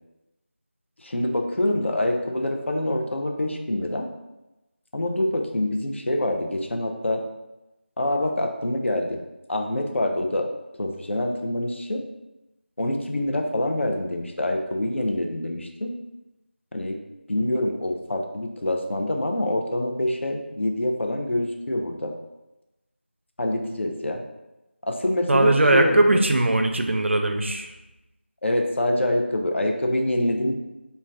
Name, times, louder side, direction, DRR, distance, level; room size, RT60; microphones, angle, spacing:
voice 1, 1.0-4.1 4.9-7.2 8.0-9.2 9.5-10.5 10.8-12.0 12.8-15.9 16.7-17.0 17.3-22.1 23.4-24.2 24.8-26.2 28.4-30.6, left 1 dB, 85° left, 3 dB, 0.5 m, -25 dB
voice 2, 25.3-27.7, right 2 dB, 90° right, 5 dB, 0.4 m, -20 dB
2.6 x 2.1 x 3.3 m, 0.99 s
figure-of-eight pair, 180°, 6 cm